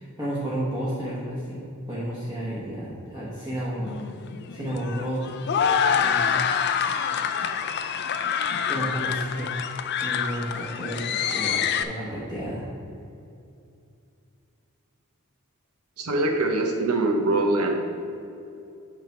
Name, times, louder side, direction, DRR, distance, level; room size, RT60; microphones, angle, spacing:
voice 1, 0.0-4.0 4.5-5.3 5.9-6.4 6.8-7.1 8.7-9.5 10.0-12.6, equal, 15° right, -8 dB, 1.2 m, -32 dB
sound 1, 3.9-11.8, left 7 dB, 50° left, 0.4 m, -26 dB
voice 2, 16.0-17.8, right 2 dB, 85° right, 3 dB, 0.9 m, -23 dB
9.0 x 3.5 x 5.9 m, 2.6 s
head